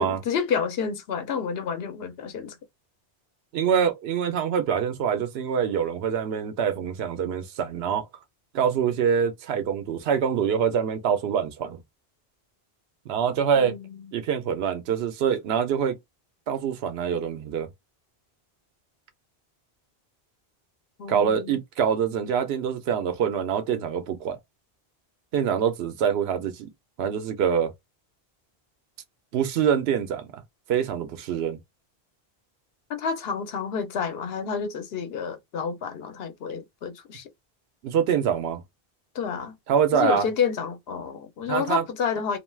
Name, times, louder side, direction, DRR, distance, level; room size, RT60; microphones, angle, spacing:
voice 1, 0.0-2.6 13.6-14.0 21.0-21.6 32.9-37.3 39.1-39.5 39.9-42.4, left 6 dB, 75° left, 0.9 m, -29 dB
voice 2, 3.5-8.1 8.5-11.8 13.1-13.7 14.1-16.0 16.5-17.7 21.1-24.4 25.3-26.7 27.0-27.7 29.3-30.2 30.7-31.6 37.8-38.6 39.7-40.3 41.5-41.9, right 7 dB, 80° right, 0.8 m, -25 dB
2.4 x 2.3 x 3.2 m
omnidirectional pair, 1.0 m